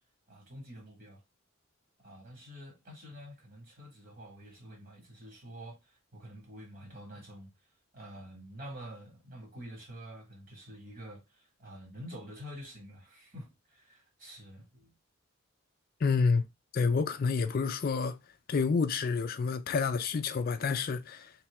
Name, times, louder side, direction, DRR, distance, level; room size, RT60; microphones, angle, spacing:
voice 1, 0.3-1.2 2.0-7.5 7.9-15.0, equal, 45° right, 2.1 m, -48 dB
voice 2, 16.0-16.5 16.7-18.2 18.5-21.3, left 5 dB, 45° left, 0.3 m, -29 dB
3.1 x 3.0 x 3.4 m
head